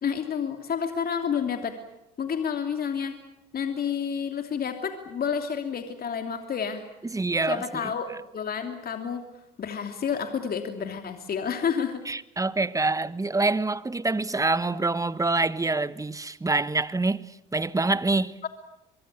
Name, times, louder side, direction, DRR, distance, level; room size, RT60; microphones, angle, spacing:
voice 1, 0.0-1.7 2.2-3.2 3.5-6.8 7.5-9.3 9.6-12.0 18.4-18.5, left 7 dB, 45° left, 2.9 m, -30 dB
voice 2, 7.0-7.9 12.1-17.2 17.5-18.4, right 3 dB, 15° right, 1.2 m, -26 dB
24.0 x 23.5 x 8.4 m
supercardioid pair, 70°, 21 cm